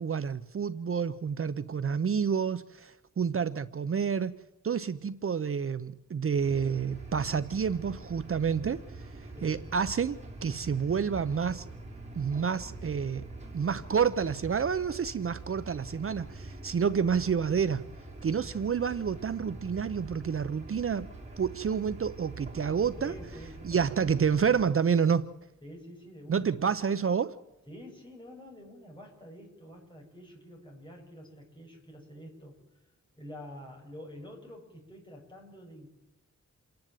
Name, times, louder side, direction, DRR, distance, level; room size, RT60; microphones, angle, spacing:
voice 1, 0.0-4.3 4.6-11.7 12.1-13.2 13.5-17.8 18.2-21.1 21.4-23.1 23.6-25.3 26.3-27.4, right 6 dB, 50° right, 12 dB, 0.7 m, -29 dB
sound 1, 6.4-24.7, right 2 dB, 25° right, 4.2 m, -45 dB
voice 2, 23.0-24.0 25.6-26.7 27.7-32.6 33.2-35.9, equal, 15° left, -1 dB, 7.3 m, -48 dB
28.0 x 10.5 x 9.1 m, 0.94 s
wide cardioid pair, 155°, 29 cm